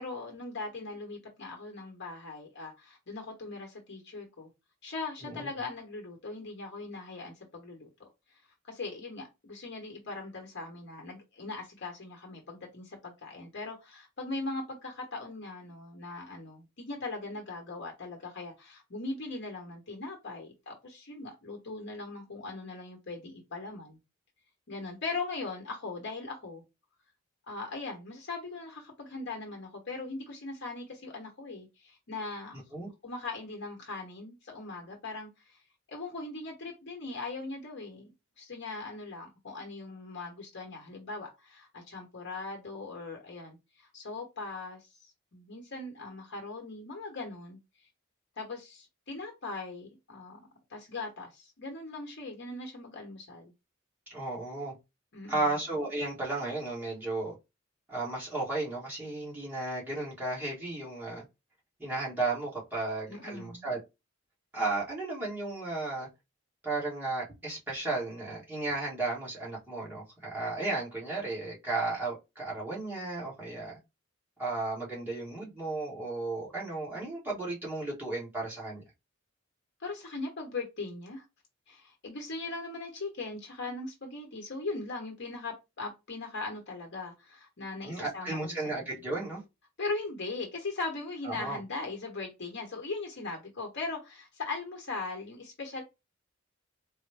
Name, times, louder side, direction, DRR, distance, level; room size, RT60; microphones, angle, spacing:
voice 1, 0.0-4.5 4.8-7.9 8.6-24.0 24.7-26.6 27.5-32.6 33.0-35.6 35.9-47.6 48.4-50.4 50.7-53.5 55.1-55.6 63.1-63.7 79.8-81.2 81.7-88.9 89.8-95.8, left 3 dB, 60° left, 1.0 m, -40 dB
voice 2, 54.1-54.7 55.3-57.3 57.9-61.2 61.8-63.8 64.5-66.1 66.6-73.8 74.4-78.8 87.8-89.4 91.2-91.6, right 2 dB, 10° right, 1.4 m, -34 dB
4.0 x 2.1 x 3.3 m
head